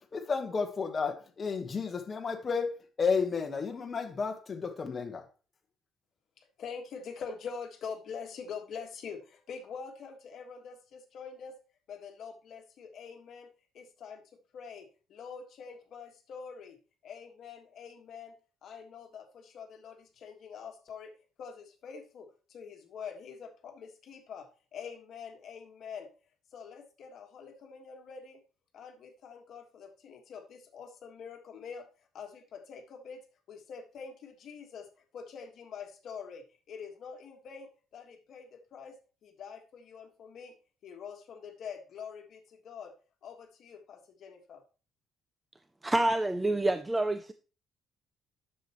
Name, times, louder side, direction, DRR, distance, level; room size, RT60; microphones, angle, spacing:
voice 1, 0.1-5.2, left 5 dB, 25° left, 1.1 m, -32 dB
voice 2, 6.4-11.5 11.9-13.5 13.7-14.2 14.5-16.8 17.0-21.1 21.4-26.1 26.5-28.4 28.7-33.2 33.5-34.9 35.1-39.0 39.2-40.5 40.8-42.9 43.2-44.6, left 6 dB, 50° left, 1.5 m, -45 dB
voice 3, 45.8-47.3, right 2 dB, 10° right, 0.3 m, -27 dB
10.0 x 6.8 x 3.0 m
cardioid pair, 170°, 0 cm